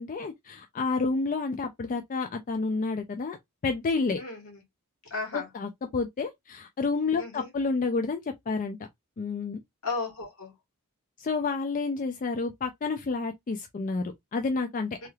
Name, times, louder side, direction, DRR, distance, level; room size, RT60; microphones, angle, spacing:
voice 1, 0.0-3.4 3.6-4.2 5.3-8.8 9.2-9.6 11.2-15.1, left 4 dB, 40° left, 0.4 m, -30 dB
voice 2, 4.2-4.6 5.0-5.5 7.2-7.5 9.8-10.5 15.0-15.1, left 3 dB, 75° left, 1.8 m, -35 dB
3.2 x 2.8 x 2.3 m
head